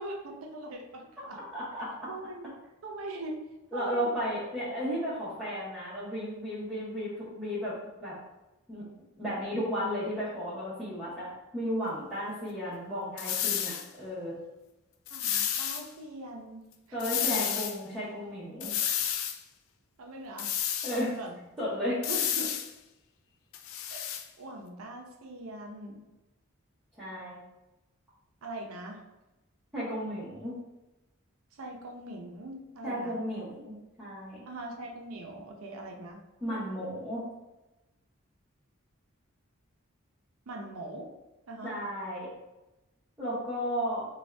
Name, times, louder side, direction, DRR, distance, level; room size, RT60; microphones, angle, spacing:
voice 1, 0.0-1.4 2.1-2.5 2.8-3.4 3.7-4.1 15.1-17.0 17.3-17.6 20.0-20.5 20.9-21.4 22.1-22.6 23.9-24.1 24.4-26.0 28.4-29.0 31.6-33.2 34.5-36.2 40.5-41.1 41.5-41.8, right 1 dB, 85° right, 1 dB, 0.6 m, -41 dB
voice 2, 1.5-1.9 3.7-8.2 8.7-8.8 9.2-14.4 16.9-18.7 20.8-21.1 21.6-22.0 27.0-27.4 29.7-30.5 32.8-34.4 36.4-37.2 41.6-42.3 43.2-44.1, equal, 5° right, -12 dB, 0.8 m, -34 dB
sound 1, 13.2-13.9 15.1-15.8 17.0-17.8 18.6-19.4 20.4-21.1 22.0-22.7 23.5-24.2, left 9 dB, 75° left, 0.3 m, -31 dB
2.6 x 2.3 x 3.2 m, 1.0 s
head